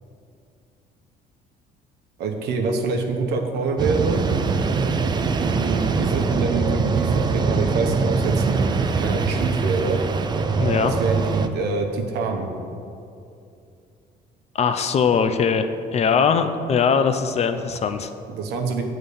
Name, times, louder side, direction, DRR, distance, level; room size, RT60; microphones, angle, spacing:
voice 1, 2.2-4.2 5.4-10.0 10.8-12.5 18.3-18.8, right 4 dB, 80° right, 3 dB, 1.0 m, -26 dB
sound 1, 3.8-11.5, right 4 dB, 25° right, 0.4 m, -22 dB
voice 2, 10.6-10.9 14.5-18.1, left 6 dB, 40° left, 9 dB, 0.5 m, -21 dB
8.1 x 3.9 x 6.9 m, 2.6 s
cardioid pair, 110°, 17 cm